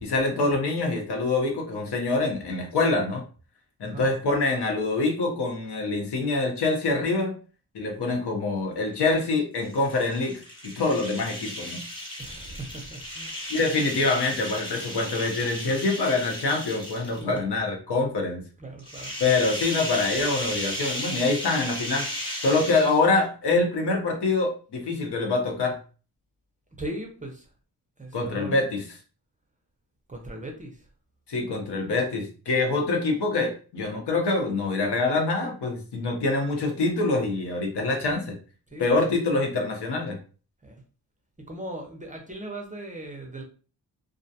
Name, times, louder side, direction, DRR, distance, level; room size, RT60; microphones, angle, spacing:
voice 1, 0.0-3.2 3.8-7.4 7.7-11.8 13.5-18.4 19.2-22.1 22.4-25.8 28.1-28.8 31.3-38.4 38.8-40.2, left 3 dB, 70° left, 2 dB, 0.8 m, -25 dB
sound 1, 9.6-17.4 18.8-23.3, equal, 10° left, 0.9 m, -35 dB
voice 2, 12.2-13.5 17.2-17.4 18.6-19.2 22.7-22.8 26.8-27.5 28.0-28.6 30.1-30.8 38.7-39.0 40.6-40.8 41.4-43.4, right 1 dB, 20° right, 2 dB, 0.4 m, -38 dB
2.4 x 2.1 x 2.7 m, 0.38 s
wide cardioid pair, 120°, 41 cm